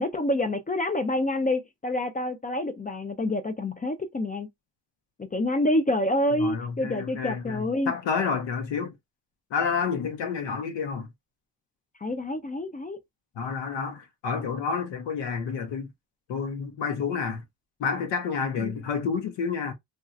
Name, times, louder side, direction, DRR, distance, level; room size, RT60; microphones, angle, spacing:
voice 1, 0.0-4.5 5.2-7.9 12.0-13.0 18.6-18.7, left 1 dB, 20° left, 0.4 m, -27 dB
voice 2, 6.4-8.9 9.5-11.1 13.4-15.9 16.3-17.4 17.8-19.7, left 5 dB, 80° left, 0.8 m, -29 dB
3.1 x 2.6 x 2.5 m
cardioid pair, 105°, 43 cm